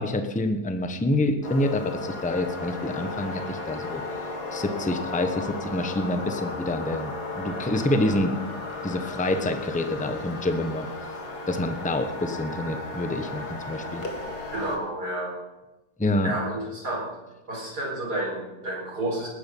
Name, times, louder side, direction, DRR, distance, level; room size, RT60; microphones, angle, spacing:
voice 1, 0.0-4.0 4.5-8.3 8.8-10.9 11.5-14.0 16.0-16.3, left 1 dB, 5° left, 7 dB, 0.8 m, -27 dB
sound 1, 1.4-14.8, left 3 dB, 75° left, 2.4 m, -35 dB
voice 2, 14.5-15.3 16.2-17.1 17.5-19.3, right 1 dB, 80° right, -2 dB, 4.9 m, -30 dB
19.0 x 10.0 x 5.4 m, 1.1 s
omnidirectional pair, 1.7 m